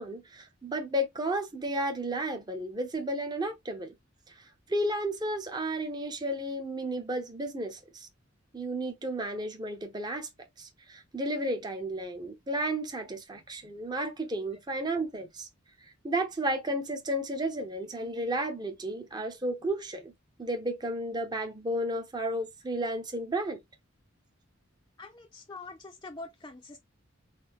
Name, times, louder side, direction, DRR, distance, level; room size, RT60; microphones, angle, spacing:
voice 1, 0.0-3.9 4.7-8.1 8.5-10.3 10.6-15.5 15.8-20.1 20.4-23.6, right 1 dB, 20° right, 0.7 m, -33 dB
voice 2, 25.0-26.8, left 3 dB, 20° left, 0.5 m, -44 dB
4.1 x 2.1 x 3.5 m
head